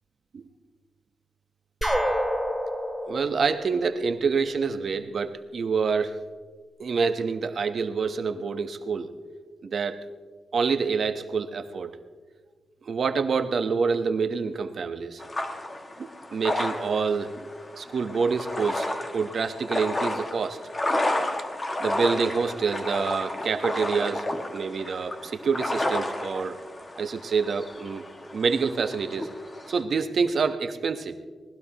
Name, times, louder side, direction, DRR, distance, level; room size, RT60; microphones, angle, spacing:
sound 1, 1.8-4.6, equal, 5° left, 2.9 m, -28 dB
voice 1, 3.0-6.1 6.8-9.1 9.6-10.0 10.5-11.9 12.8-15.2 16.0-17.4 17.8-20.6 21.8-26.6 27.0-28.0 28.3-29.3 29.7-31.1, right 5 dB, 60° right, 8 dB, 1.1 m, -27 dB
sound 2, 15.2-29.8, left 1 dB, 30° left, 1.8 m, -32 dB
25.0 x 19.0 x 3.0 m, 1.5 s
wide cardioid pair, 115°, 0 cm